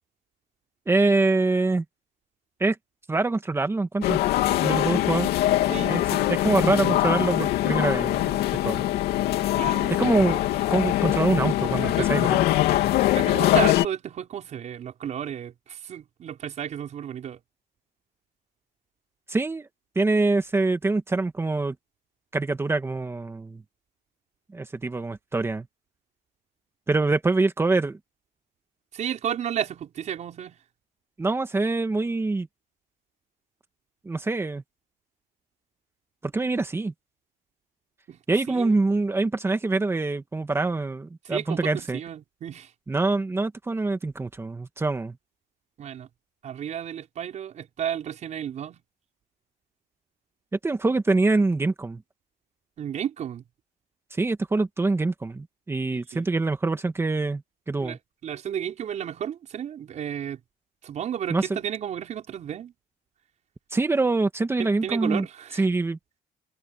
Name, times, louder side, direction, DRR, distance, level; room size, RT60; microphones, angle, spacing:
voice 1, 0.9-1.8 2.6-2.8 3.1-4.2 4.6-5.3 5.8-8.8 10.0-12.4 19.3-19.7 19.9-21.7 22.3-23.6 24.5-25.7 26.9-28.0 31.2-32.5 34.0-34.6 36.2-36.9 38.3-42.0 42.9-45.1 50.6-52.0 54.1-57.4 57.7-58.0 61.3-61.6 63.7-65.2 65.6-66.0, right 3 dB, 15° right, 1.5 m, -25 dB
sound 1, 4.0-13.9, left 14 dB, 75° left, 2.9 m, -23 dB
voice 2, 5.7-6.1 9.6-10.0 11.9-12.1 13.1-17.4 28.9-30.6 38.1-38.2 38.5-38.7 41.2-42.7 45.8-46.1 46.4-48.8 52.8-53.4 56.1-56.3 57.8-60.4 60.8-62.7 64.6-65.7, right 9 dB, 45° right, 5.3 m, -33 dB
cardioid pair, 135°, 16 cm